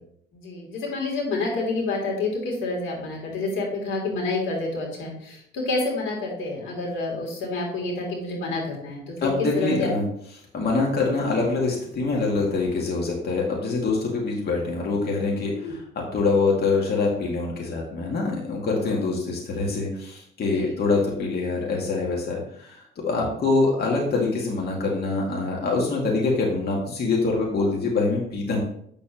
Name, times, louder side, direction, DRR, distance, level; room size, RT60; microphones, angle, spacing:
voice 1, 0.3-9.9 15.6-15.7 20.5-20.8, left 3 dB, 75° left, -1 dB, 3.1 m, -28 dB
voice 2, 9.2-10.1 10.5-28.6, left 3 dB, 55° left, -2 dB, 2.1 m, -25 dB
8.1 x 7.0 x 3.0 m, 0.67 s
cardioid pair, 90°, 20 cm